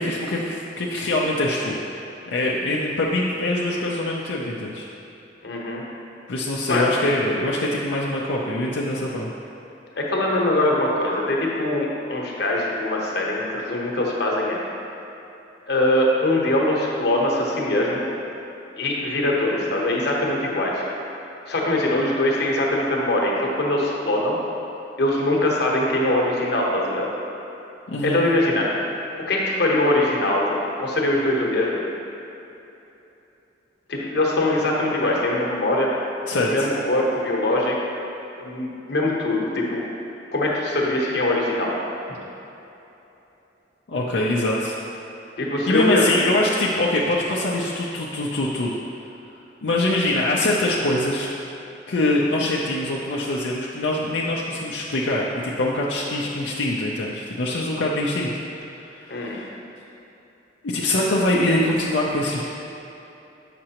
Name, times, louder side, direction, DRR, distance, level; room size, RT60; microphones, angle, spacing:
voice 1, 0.0-1.8 2.3-4.9 6.3-9.3 27.9-28.2 36.3-36.7 43.9-44.8 45.7-48.8 49.6-51.3 51.9-58.3 58.9-59.5 60.6-62.4, left 1 dB, 85° left, -4 dB, 0.6 m, -23 dB
voice 2, 5.4-5.8 6.7-6.9 10.0-14.6 15.7-18.0 18.7-20.9 21.5-24.4 25.0-27.1 28.0-28.7 29.3-31.8 33.9-35.9 36.5-37.8 38.4-39.8 40.3-41.8 45.4-46.1 59.1-59.4, left 1 dB, 65° left, -3 dB, 1.0 m, -22 dB
7.6 x 5.9 x 2.9 m, 3.0 s
head